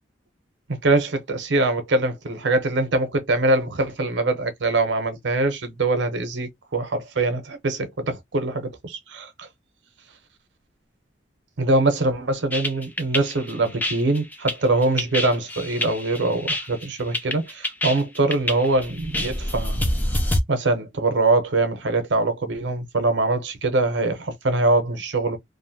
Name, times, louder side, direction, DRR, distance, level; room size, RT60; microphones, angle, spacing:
voice 1, 0.8-9.5 11.6-19.8 20.5-25.4, right 2 dB, 80° right, 0.7 m, -23 dB
sound 1, 12.5-20.4, left 1 dB, 10° left, 0.3 m, -27 dB
2.6 x 2.1 x 2.6 m
head